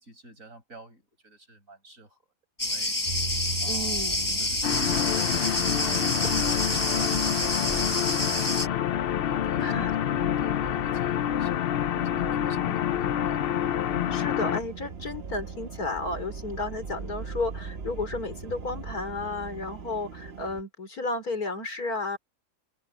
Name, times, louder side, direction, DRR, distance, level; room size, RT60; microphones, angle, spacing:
voice 1, 0.0-2.2 2.6-3.0 3.6-5.3 6.7-8.5 9.3-9.7 10.4-11.5 12.1-13.4, right 2 dB, 65° right, 7.7 m, -49 dB
Cricket, 2.6-8.7, left 1 dB, 15° left, 1.3 m, -28 dB
sound 1, 3.0-20.6, right 4 dB, 50° right, 1.3 m, -39 dB
voice 2, 3.7-4.4 6.2-6.5 9.6-10.0 12.5-12.8 14.1-22.2, left 2 dB, 90° left, 4.8 m, -33 dB
sound 2, 4.6-14.6, left 11 dB, 70° left, 0.5 m, -27 dB
omnidirectional pair, 1.5 m